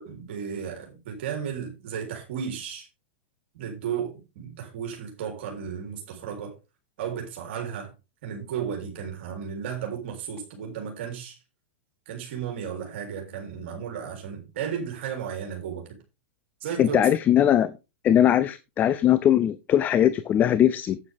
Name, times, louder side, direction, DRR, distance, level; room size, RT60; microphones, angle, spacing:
voice 1, 0.1-2.9 3.5-6.5 7.0-7.9 8.2-11.4 12.1-16.0 16.6-17.0, right 7 dB, 60° right, 3.5 m, -34 dB
voice 2, 16.8-17.7 18.0-21.0, left 11 dB, 25° left, 0.6 m, -20 dB
9.5 x 8.8 x 3.6 m
hypercardioid pair, 125°, 7 cm